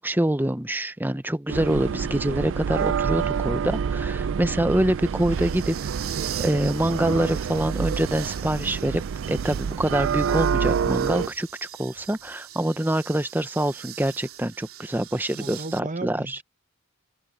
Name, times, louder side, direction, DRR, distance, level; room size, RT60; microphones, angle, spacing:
voice 1, 0.0-5.9 6.4-9.0 9.3-16.4, right 1 dB, 10° right, 0.7 m, -25 dB
sound 1, 1.5-11.3, right 7 dB, 60° right, 0.3 m, -27 dB
sound 2, 2.7-15.8, right 12 dB, 85° right, 3.2 m, -42 dB
voice 2, 15.3-16.4, right 3 dB, 35° right, 0.9 m, -34 dB
head